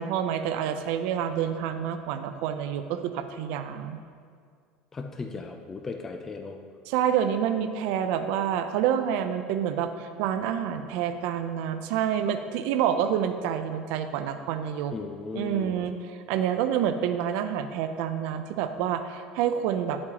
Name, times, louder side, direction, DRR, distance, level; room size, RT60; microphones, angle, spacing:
voice 1, 0.0-4.0 6.9-14.9 15.3-20.0, right 9 dB, 70° right, 9 dB, 0.5 m, -28 dB
voice 2, 4.9-6.6 14.9-15.9, left 4 dB, 15° left, 4 dB, 0.4 m, -36 dB
9.9 x 8.5 x 2.9 m, 2.1 s
cardioid pair, 150°, 2 cm